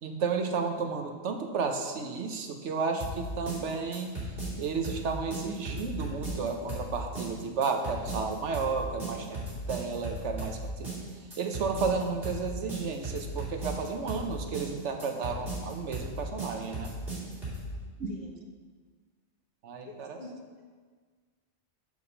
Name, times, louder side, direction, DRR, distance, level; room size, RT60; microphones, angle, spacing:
voice 1, 0.0-4.2 4.6-9.4 9.7-10.9 11.4-16.9 18.0-18.1 19.6-20.2, right 5 dB, 85° right, 4 dB, 1.1 m, -32 dB
sound 1, 3.0-17.7, right 2 dB, 55° right, 3.2 m, -37 dB
voice 2, 17.7-18.4 19.8-20.6, left 3 dB, 40° left, -2 dB, 1.2 m, -48 dB
7.0 x 5.1 x 6.6 m, 1.5 s
omnidirectional pair, 1.2 m